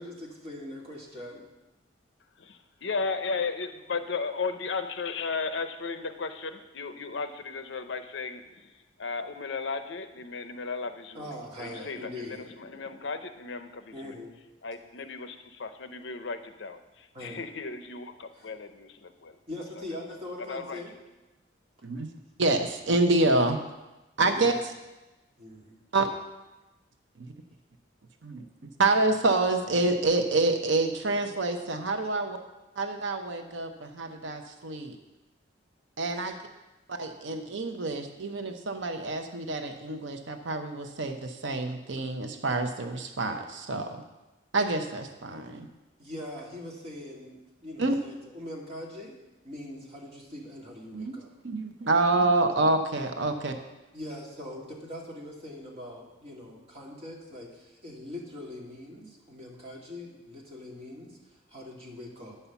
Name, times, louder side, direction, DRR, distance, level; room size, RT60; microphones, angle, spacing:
voice 1, 0.0-1.4 11.1-12.6 13.9-14.3 17.1-17.4 18.3-18.5 19.5-21.0 24.3-24.5 25.4-25.8 36.1-36.3 46.0-49.1 49.4-51.3 53.9-62.4, left 1 dB, 30° right, -3 dB, 2.1 m, -42 dB
voice 2, 2.4-8.4 9.0-11.2 11.6-14.1 14.6-16.8 17.2-19.3 20.5-20.8, left 4 dB, 65° left, 9 dB, 0.6 m, -35 dB
voice 3, 22.4-23.6 24.2-24.5 25.9-26.1 27.2-27.3 28.2-28.4 28.8-32.4 32.8-35.0 36.0-36.4 36.9-44.0 44.5-45.7 47.8-48.0 50.9-51.2 51.4-53.5, right 2 dB, 70° right, 6 dB, 0.8 m, -27 dB
9.5 x 5.6 x 7.0 m, 1.0 s
head